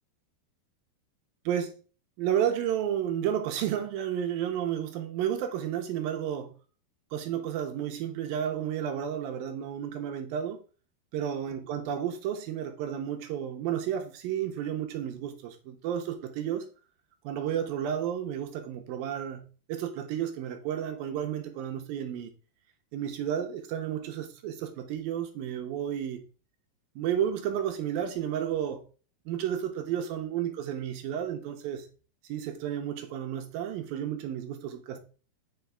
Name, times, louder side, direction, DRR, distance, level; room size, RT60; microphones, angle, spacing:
voice 1, 1.5-1.8 2.2-6.5 7.1-10.6 11.1-16.7 17.2-22.3 22.9-26.2 27.0-28.8 29.3-31.9 32.2-35.0, right 9 dB, 75° right, 2.4 m, -32 dB
9.0 x 5.1 x 3.6 m
omnidirectional pair, 4.7 m